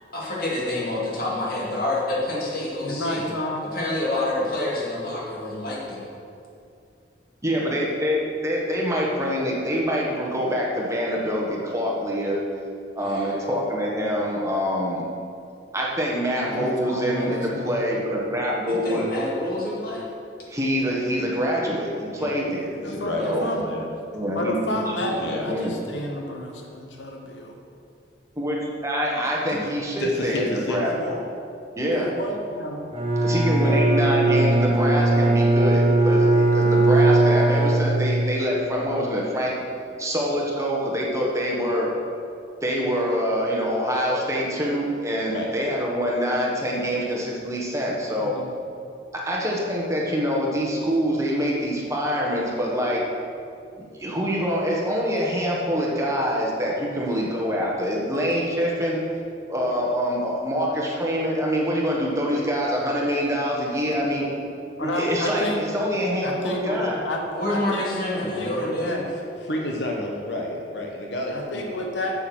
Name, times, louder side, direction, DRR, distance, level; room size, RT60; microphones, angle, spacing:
voice 1, 0.1-3.3 3.7-6.0 13.0-13.4 18.7-20.1 23.2-23.5 67.4-69.0, left 1 dB, 55° left, -5 dB, 2.3 m, -28 dB
voice 2, 2.8-3.7 16.4-17.7 22.8-23.6 24.3-27.5 31.9-32.9 48.2-48.5 64.8-65.6 66.2-67.9 68.2-69.1 71.3-72.1, left 1 dB, 90° left, 1 dB, 1.1 m, -30 dB
voice 3, 7.4-12.4 12.9-15.0 15.7-19.0 20.5-22.7 23.2-23.5 24.1-24.6 25.0-25.7 28.4-30.9 31.8-32.1 33.2-39.6 40.0-41.9 42.6-48.3 49.1-53.0 54.0-59.0 59.5-64.3 64.8-67.0, equal, 15° right, -3 dB, 1.4 m, -25 dB
voice 4, 22.2-23.9 25.2-25.5 29.5-29.6 30.0-31.2 33.6-33.9 45.3-45.5 63.9-64.2 69.4-71.7, left 1 dB, 70° left, 0 dB, 1.1 m, -31 dB
Bowed string instrument, 32.9-38.4, right 2 dB, 30° right, 1.0 m, -19 dB
7.9 x 7.2 x 6.1 m, 2.5 s
head